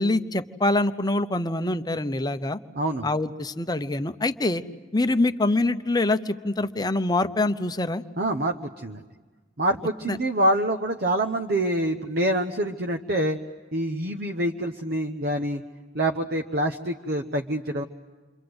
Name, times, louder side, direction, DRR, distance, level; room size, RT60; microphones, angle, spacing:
voice 1, 0.0-2.6 3.0-4.6 4.9-8.0 10.1-10.2, left 2 dB, 20° left, 10 dB, 0.8 m, -25 dB
voice 2, 2.8-3.1 8.2-9.0 9.6-13.4 13.7-15.6 15.9-17.8, right 1 dB, 55° right, 5 dB, 1.0 m, -26 dB
29.0 x 25.0 x 7.9 m, 1.4 s
head